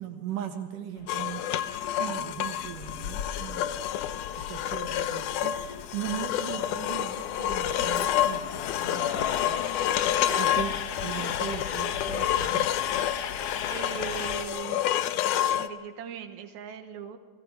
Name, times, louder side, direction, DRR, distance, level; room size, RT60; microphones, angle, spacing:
voice 1, 0.0-3.8 4.4-8.5 8.8-9.9 10.4-12.7, right 10 dB, 85° right, 3 dB, 3.1 m, -38 dB
Train, 1.0-14.5, left 8 dB, 60° left, 1.8 m, -37 dB
sound 1, 1.1-15.7, left 11 dB, 80° left, 2.2 m, -29 dB
voice 2, 10.2-10.6 10.8-11.0 12.5-12.7 13.7-15.1 15.5-17.2, right 7 dB, 70° right, 6 dB, 2.7 m, -40 dB
30.0 x 20.5 x 4.9 m, 1.4 s
omnidirectional pair, 3.6 m